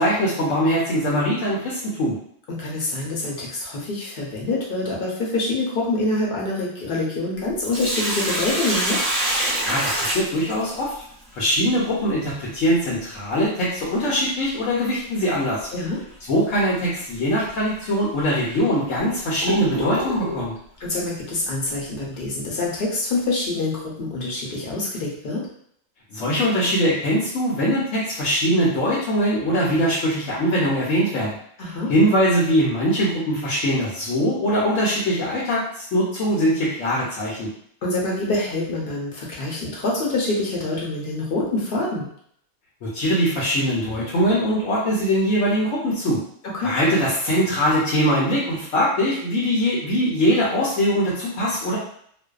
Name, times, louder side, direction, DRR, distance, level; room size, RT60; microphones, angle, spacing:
voice 1, 0.0-2.2 9.6-10.9 11.3-15.7 16.3-20.5 26.1-31.4 31.9-37.5 42.8-46.2 46.6-51.8, equal, 70° left, -7 dB, 1.0 m, -22 dB
voice 2, 2.5-9.0 15.7-16.0 20.8-25.4 31.6-31.9 37.8-42.1 46.4-46.7, left 2 dB, 50° left, -4 dB, 0.8 m, -26 dB
Sink (filling or washing), 7.4-11.0 13.4-13.5 15.4-15.6 16.1-16.2 17.0-17.1 17.8-17.9 18.6-20.5, right 1 dB, 35° right, 0.8 m, -26 dB
2.5 x 2.2 x 2.3 m, 0.65 s
omnidirectional pair, 1.4 m